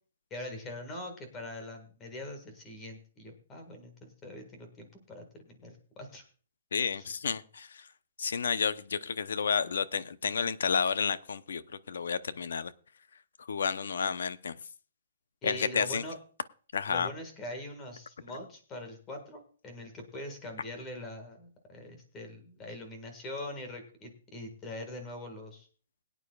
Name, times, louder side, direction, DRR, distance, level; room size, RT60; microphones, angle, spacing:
voice 1, 0.3-6.2 15.4-16.2 16.9-25.7, left 1 dB, 15° left, 4 dB, 1.7 m, -43 dB
voice 2, 6.7-7.9 8.2-12.7 13.4-14.6 15.4-16.0 16.7-17.1, left 6 dB, 80° left, 15 dB, 0.7 m, -31 dB
21.5 x 9.2 x 2.4 m, 0.39 s
hypercardioid pair, 175°, 0 cm